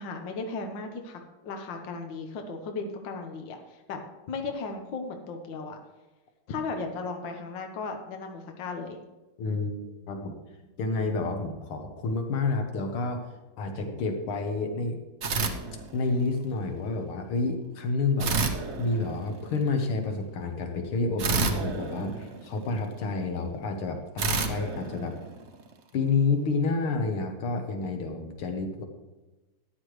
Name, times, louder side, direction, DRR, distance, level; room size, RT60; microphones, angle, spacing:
voice 1, 0.0-4.0 4.3-5.8 6.5-9.0, left 4 dB, 65° left, 4 dB, 1.7 m, -36 dB
voice 2, 9.4-9.7 10.1-10.4 10.8-13.3 13.6-15.0 15.9-18.4 18.8-25.1 25.9-28.8, left 3 dB, 80° left, 4 dB, 2.1 m, -29 dB
sound 1, 15.2-16.4 18.2-19.6 21.2-22.9 24.2-25.7, right 4 dB, 55° right, 0.7 m, -30 dB
13.5 x 9.6 x 3.2 m, 1.1 s
omnidirectional pair, 2.4 m